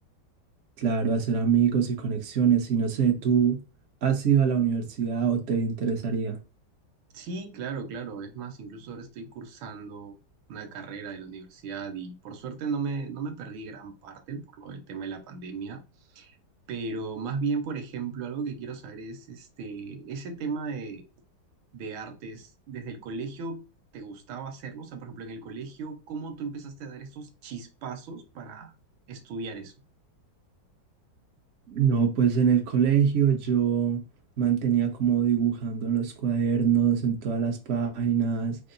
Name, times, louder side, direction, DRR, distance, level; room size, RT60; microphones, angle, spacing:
voice 1, 0.8-3.6 4.0-6.4 31.7-34.0 34.4-38.6, right 7 dB, 50° right, 1.0 m, -24 dB
voice 2, 7.1-10.1 10.5-15.8 16.1-16.4 16.7-21.0 21.7-23.6 23.9-28.7 29.1-29.7, right 4 dB, 90° right, 1.6 m, -36 dB
4.6 x 2.1 x 3.8 m
omnidirectional pair, 2.2 m